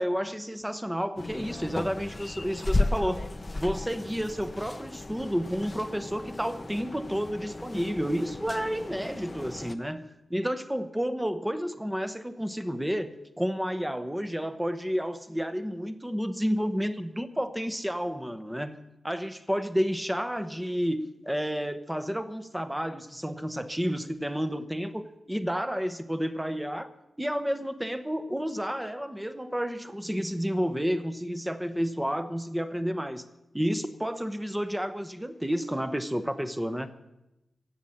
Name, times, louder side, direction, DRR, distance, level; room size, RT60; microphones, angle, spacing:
voice 1, 0.0-3.3 3.5-26.9 27.2-33.2 33.5-36.9, equal, 5° right, 0.9 m, -31 dB
sound 1, 1.2-9.8, left 2 dB, 25° left, 0.7 m, -34 dB
16.5 x 7.9 x 8.6 m
wide cardioid pair, 120°, 0 cm